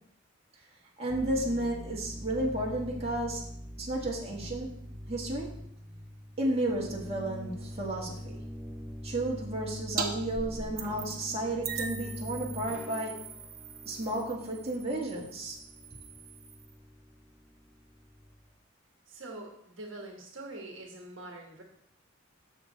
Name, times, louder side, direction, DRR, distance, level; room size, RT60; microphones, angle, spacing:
voice 1, 1.0-3.4 3.8-4.7 5.1-5.5 6.4-8.4 9.0-13.1 13.8-15.6, right 1 dB, 30° right, -3 dB, 1.7 m, -32 dB
sound 1, 1.1-18.5, equal, 5° right, 0.5 m, -44 dB
sound 2, 10.0-10.1 10.3-11.3 11.6-16.7, right 5 dB, 45° right, 1.0 m, -40 dB
voice 2, 19.1-21.6, right 2 dB, 65° right, 1 dB, 1.4 m, -44 dB
7.4 x 6.8 x 4.0 m, 0.70 s
head